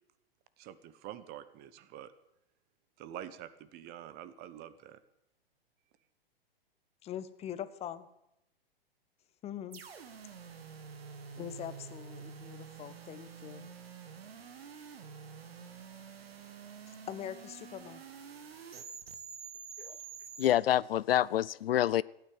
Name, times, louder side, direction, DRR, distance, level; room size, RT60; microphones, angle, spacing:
voice 1, 0.6-2.1 3.0-5.0, right 11 dB, 30° right, 1.1 m, -46 dB
voice 2, 7.0-8.1 9.4-9.8 11.4-13.7 16.9-18.0, left 10 dB, 20° left, 0.8 m, -42 dB
sound 1, 9.7-20.5, right 6 dB, 70° right, 1.9 m, -48 dB
voice 3, 20.4-22.0, left 12 dB, 70° left, 0.4 m, -27 dB
14.5 x 9.4 x 9.3 m
hypercardioid pair, 115°, 31 cm